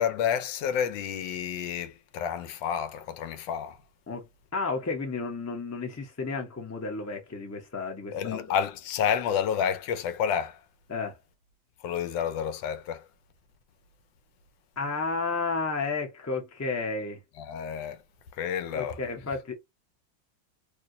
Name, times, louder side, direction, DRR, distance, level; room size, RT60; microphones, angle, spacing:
voice 1, 0.0-3.8 8.1-10.6 11.8-13.1 17.4-18.0 18.3-19.0, left 8 dB, 80° left, 1.3 m, -30 dB
voice 2, 4.1-8.6 10.9-11.2 14.8-17.2 18.7-19.5, left 4 dB, 20° left, 0.4 m, -32 dB
3.2 x 2.7 x 2.6 m
omnidirectional pair, 2.0 m